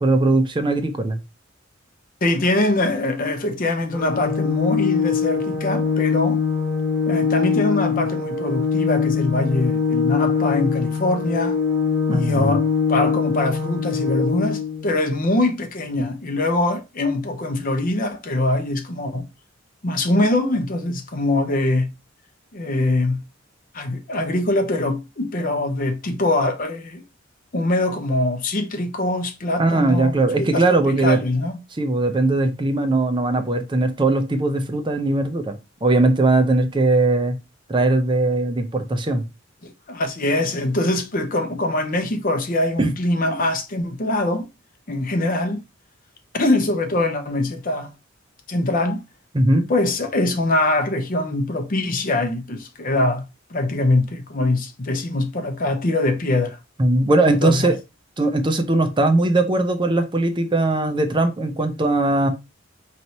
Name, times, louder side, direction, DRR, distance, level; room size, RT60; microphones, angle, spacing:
voice 1, 0.0-1.2 12.1-12.5 29.6-31.2 31.8-37.4 37.7-39.2 42.8-42.9 49.3-49.7 56.8-57.8 58.2-62.3, right 2 dB, 25° right, 0.6 m, -19 dB
voice 2, 2.2-6.4 7.1-11.6 12.1-19.3 19.8-21.9 22.5-23.2 23.7-27.0 27.5-31.6 39.6-44.5 44.9-45.6 46.3-47.9 48.5-49.0 49.7-53.2 53.5-56.6 57.4-57.7, left 2 dB, 45° left, 0.7 m, -23 dB
Organ, 3.9-14.9, left 6 dB, 5° right, 1.6 m, -22 dB
4.2 x 3.2 x 2.7 m
head